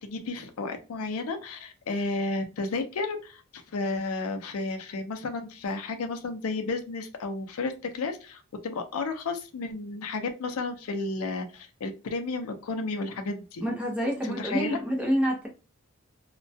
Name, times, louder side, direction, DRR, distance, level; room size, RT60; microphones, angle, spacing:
voice 1, 0.0-3.4 3.7-13.6 14.2-14.8, left 3 dB, 75° left, 6 dB, 0.4 m, -32 dB
voice 2, 13.6-15.5, equal, 5° right, -2 dB, 0.6 m, -27 dB
2.2 x 2.2 x 2.6 m, 0.32 s
head